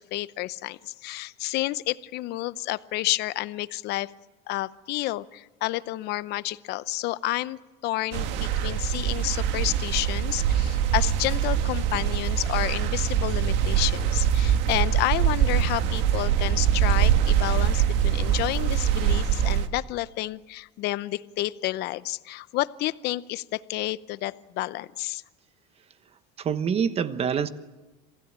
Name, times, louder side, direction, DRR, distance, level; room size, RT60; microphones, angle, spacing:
voice 1, 0.0-4.1 4.5-25.2, left 17 dB, 55° left, 16 dB, 0.8 m, -30 dB
sound 1, 8.1-19.7, right 9 dB, 60° right, 1.6 m, -23 dB
voice 2, 26.4-27.5, right 7 dB, 30° right, 12 dB, 1.1 m, -25 dB
27.0 x 16.5 x 8.9 m, 1.2 s
cardioid pair, 135°, 21 cm